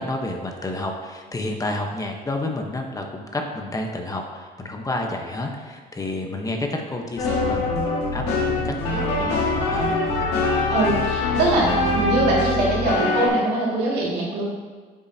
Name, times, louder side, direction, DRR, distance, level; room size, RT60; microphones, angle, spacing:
voice 1, 0.0-10.2 11.7-11.9, left 2 dB, 20° left, 2 dB, 1.0 m, -30 dB
sound 1, 7.2-13.3, left 2 dB, 85° left, 1.8 m, -23 dB
voice 2, 10.7-14.5, right 2 dB, 85° right, -4 dB, 2.2 m, -22 dB
9.6 x 7.4 x 2.8 m, 1.5 s
cardioid pair, 110°, 17 cm